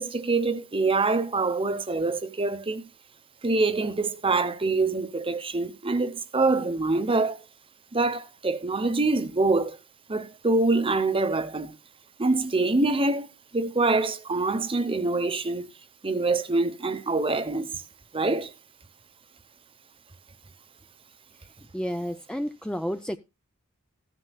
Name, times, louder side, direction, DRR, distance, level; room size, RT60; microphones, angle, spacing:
voice 1, 0.0-2.8 3.4-7.4 7.9-9.8 10.1-11.7 12.2-13.3 13.5-15.7 16.0-17.8 18.1-18.5, right 3 dB, 25° right, 0.9 m, -25 dB
voice 2, 21.7-23.2, equal, 5° left, 0.4 m, -31 dB
15.0 x 9.9 x 2.3 m
head